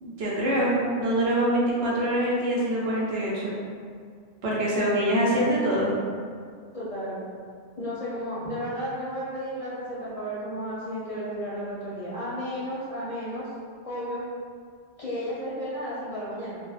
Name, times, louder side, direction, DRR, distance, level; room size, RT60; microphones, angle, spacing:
voice 1, 0.0-3.5 4.4-5.9, right 1 dB, 70° right, -5 dB, 0.8 m, -24 dB
voice 2, 6.7-7.2 7.8-13.5 13.8-14.3 15.0-16.6, equal, 40° left, -10 dB, 0.6 m, -33 dB
2.8 x 2.1 x 2.4 m, 2.1 s
omnidirectional pair, 1.1 m